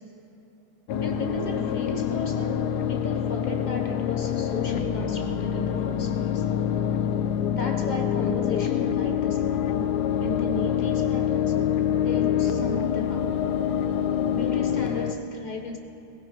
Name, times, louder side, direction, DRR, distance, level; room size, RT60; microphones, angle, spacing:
sound 1, 0.9-15.1, left 9 dB, 75° left, 1.1 m, -26 dB
voice 1, 1.0-6.4 7.5-11.5 12.0-13.5 14.3-15.8, left 2 dB, 30° left, 2 dB, 1.0 m, -35 dB
20.5 x 16.5 x 3.1 m, 3.0 s
omnidirectional pair, 1.8 m